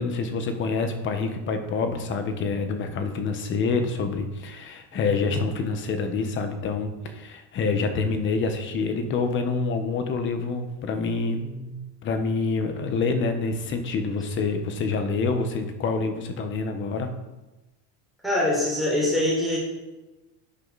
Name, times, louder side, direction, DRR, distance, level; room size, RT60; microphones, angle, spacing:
voice 1, 0.0-11.5 12.0-17.1, left 4 dB, 25° left, 7 dB, 1.1 m, -27 dB
voice 2, 18.2-19.6, left 1 dB, ahead, -5 dB, 3.7 m, -23 dB
11.5 x 9.7 x 4.1 m, 1.1 s
cardioid pair, 165°, 43 cm